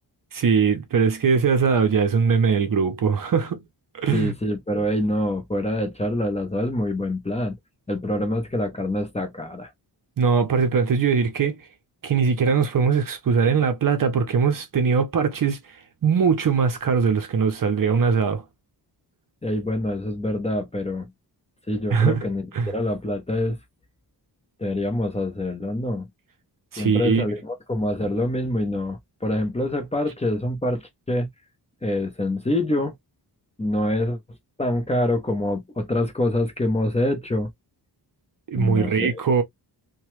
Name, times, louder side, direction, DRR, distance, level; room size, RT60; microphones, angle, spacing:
voice 1, 0.3-3.6 4.0-4.3 10.2-11.6 12.0-15.6 16.0-18.4 21.9-22.3 22.5-22.7 26.7-27.3 38.5-39.4, right 5 dB, 50° right, 0.6 m, -21 dB
voice 2, 4.1-7.6 7.9-9.7 19.4-21.1 21.7-23.6 24.6-26.1 26.8-31.3 31.8-32.9 33.6-34.2 34.6-37.5 38.5-39.1, left 1 dB, 15° left, 0.6 m, -25 dB
2.9 x 2.2 x 3.0 m
wide cardioid pair, 140°, 42 cm